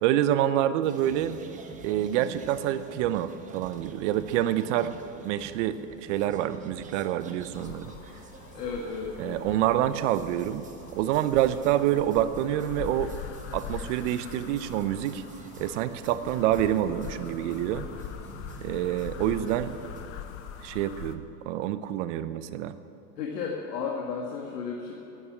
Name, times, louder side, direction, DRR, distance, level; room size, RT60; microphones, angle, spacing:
voice 1, 0.0-1.4 1.8-4.9 5.2-7.9 9.2-10.6 11.0-13.1 13.5-15.2 15.6-17.9 18.6-19.7 20.6-22.8, right 12 dB, 50° right, 12 dB, 0.8 m, -27 dB
sound 1, 0.8-20.1, right 4 dB, 15° right, 0.9 m, -47 dB
sound 2, 7.5-21.1, left 9 dB, 30° left, 0.8 m, -43 dB
voice 2, 8.5-9.4 12.0-12.1 14.9-15.0 16.2-16.5 18.3-18.4 23.2-24.9, left 5 dB, 75° left, -1 dB, 2.0 m, -34 dB
11.0 x 9.8 x 9.8 m, 3.0 s
hypercardioid pair, 135°, 48 cm